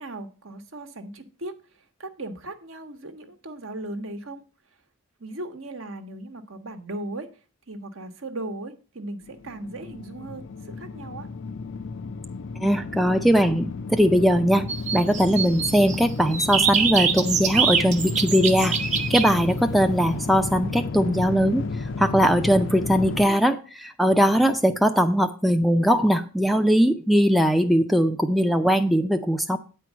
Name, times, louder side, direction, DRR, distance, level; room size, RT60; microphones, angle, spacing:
voice 1, 0.0-4.4 5.2-7.3 7.7-11.3, right 2 dB, 65° right, 8 dB, 1.1 m, -37 dB
sound 1, 9.2-23.3, left 4 dB, 60° left, 0.5 m, -32 dB
voice 2, 12.6-14.7 14.9-21.6 22.0-29.6, equal, ahead, 7 dB, 0.4 m, -20 dB
sound 2, 14.7-16.0 16.3-19.3, right 6 dB, 35° right, 0.9 m, -24 dB
9.0 x 4.6 x 7.2 m, 0.37 s
head